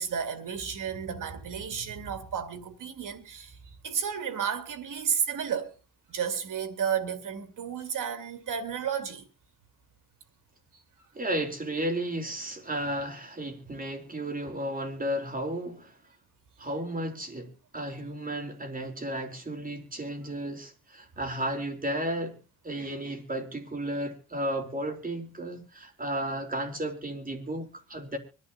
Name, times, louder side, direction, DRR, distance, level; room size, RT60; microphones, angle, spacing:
voice 1, 0.0-3.6 3.8-5.7 6.1-9.2, right 7 dB, 70° right, 2.4 m, -32 dB
voice 2, 11.1-16.0 16.6-22.4 22.6-28.2, right 1 dB, 25° right, 3.6 m, -33 dB
24.5 x 11.0 x 2.7 m
cardioid pair, 95°, 32 cm